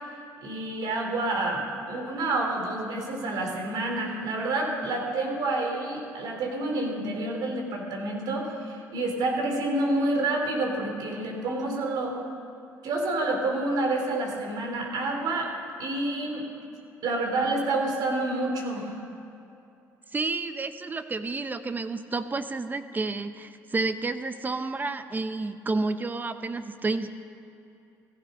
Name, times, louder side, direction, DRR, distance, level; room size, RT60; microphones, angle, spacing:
voice 1, 0.4-12.2 12.8-15.5 15.8-16.5 17.0-19.0, right 2 dB, 70° right, 1 dB, 3.4 m, -28 dB
voice 2, 20.1-27.1, right 3 dB, 25° right, 10 dB, 1.0 m, -30 dB
16.0 x 15.5 x 5.5 m, 2.7 s
supercardioid pair, 75°, 7 cm